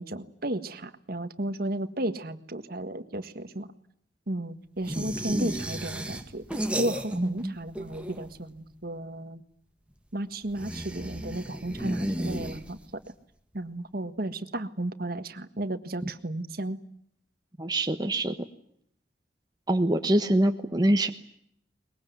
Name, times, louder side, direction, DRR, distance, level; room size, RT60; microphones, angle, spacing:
voice 1, 0.0-3.7 4.3-6.4 6.8-9.4 10.1-13.0 13.5-16.8, right 1 dB, 55° right, 10 dB, 1.7 m, -34 dB
sound 1, 4.8-7.4 7.7-8.5 10.5-13.0, right 1 dB, 5° right, 1.8 m, -33 dB
voice 2, 7.1-7.5 17.6-18.4 19.7-21.1, right 1 dB, 20° right, 5 dB, 1.2 m, -24 dB
23.0 x 22.0 x 9.5 m, 0.70 s
head